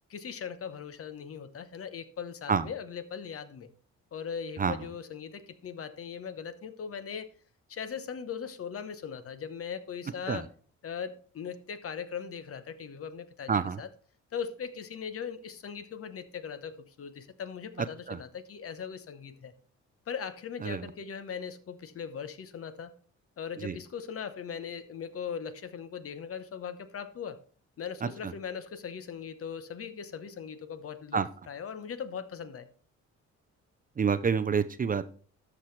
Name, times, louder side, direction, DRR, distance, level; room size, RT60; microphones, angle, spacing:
voice 1, 0.1-3.7 4.1-7.3 7.7-10.5 10.8-13.9 14.3-19.5 20.1-22.9 23.4-27.4 27.8-32.7, left 7 dB, 50° left, 0.9 m, -39 dB
voice 2, 13.5-13.8 18.1-18.2 20.6-20.8 23.6-23.8 31.1-31.3 34.0-35.1, right 6 dB, 30° right, 0.5 m, -27 dB
12.5 x 6.0 x 3.2 m
cardioid pair, 90°, 30 cm